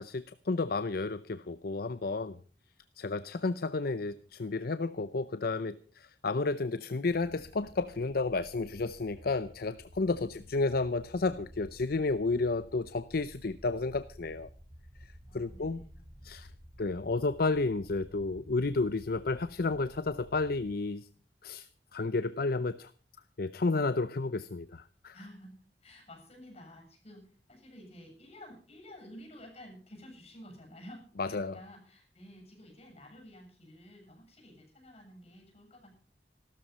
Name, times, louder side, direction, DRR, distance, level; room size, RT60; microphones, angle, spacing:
voice 1, 0.0-2.4 3.0-14.5 15.3-15.8 16.2-16.5 16.8-21.0 21.4-21.7 21.9-22.9 23.4-25.1 31.2-31.6, left 3 dB, 60° left, 14 dB, 0.6 m, -31 dB
sound 1, 7.1-20.7, equal, 45° right, 3.7 m, -53 dB
voice 2, 15.3-16.3 25.1-35.9, equal, 35° left, 2 dB, 8.0 m, -52 dB
15.5 x 13.0 x 5.4 m, 0.40 s
head